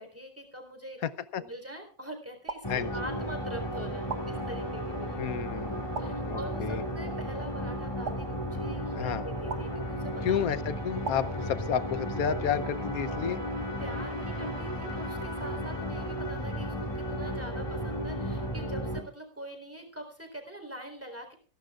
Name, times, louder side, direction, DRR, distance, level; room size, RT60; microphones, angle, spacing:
voice 1, 0.0-1.0 1.4-5.3 6.0-10.4 13.8-21.3, right 1 dB, 5° right, 5 dB, 3.8 m, -44 dB
voice 2, 1.0-1.4 2.7-2.9 5.2-6.8 9.0-9.2 10.2-13.4, left 8 dB, 60° left, 14 dB, 1.1 m, -31 dB
sound 1, 2.5-3.4 4.1-5.0 5.9-6.8 8.0-9.0 9.5-10.3 11.0-12.0, right 5 dB, 45° right, 1.3 m, -42 dB
sound 2, 2.6-19.0, equal, 15° left, 2.3 m, -34 dB
26.5 x 11.5 x 2.4 m, 0.43 s
omnidirectional pair, 1.9 m